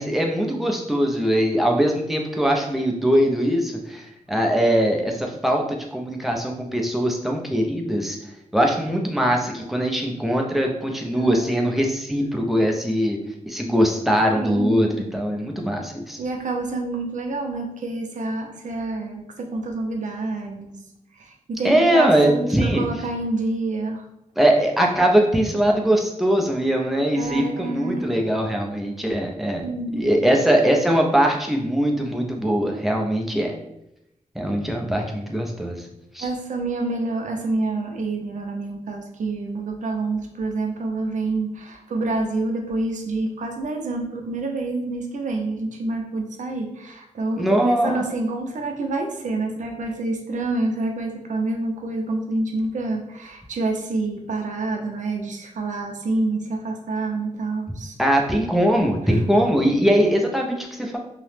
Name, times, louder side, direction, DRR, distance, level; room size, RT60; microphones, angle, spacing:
voice 1, 0.0-8.2 8.5-13.2 13.5-16.2 21.6-22.8 24.4-29.6 29.9-33.5 34.4-35.8 36.1-36.3 47.4-48.0 58.0-61.0, equal, ahead, 0 dB, 0.4 m, -21 dB
voice 2, 11.1-11.5 14.4-15.0 16.2-20.7 21.2-24.0 27.1-28.1 29.6-30.1 36.2-58.0, right 2 dB, 70° right, 3 dB, 0.4 m, -27 dB
2.8 x 2.0 x 3.1 m, 0.84 s
wide cardioid pair, 150°, 13 cm